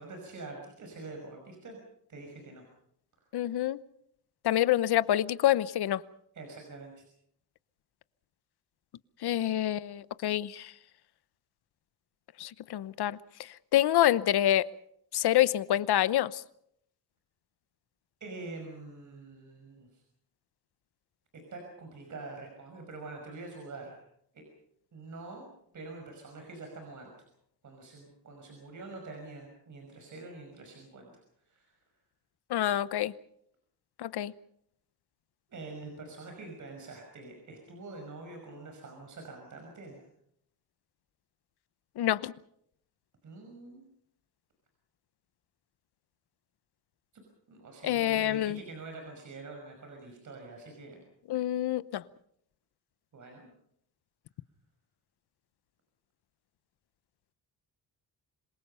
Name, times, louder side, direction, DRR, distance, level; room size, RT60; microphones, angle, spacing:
voice 1, 0.0-1.8 2.1-2.7 6.3-7.0 18.2-20.0 21.3-24.0 24.3-24.4 24.9-25.4 25.7-27.3 27.6-31.1 31.5-31.7 35.5-40.0 43.2-43.8 47.1-47.2 47.5-51.0 53.1-53.5, right 3 dB, 50° right, 5.7 m, -45 dB
voice 2, 3.3-3.8 4.4-6.0 9.2-10.7 12.4-13.2 13.7-14.7 15.1-16.4 32.5-33.1 34.0-34.3 42.0-42.3 47.8-48.6 51.3-52.0, left 12 dB, 75° left, 0.9 m, -27 dB
27.0 x 22.5 x 5.6 m
wide cardioid pair, 160°, 39 cm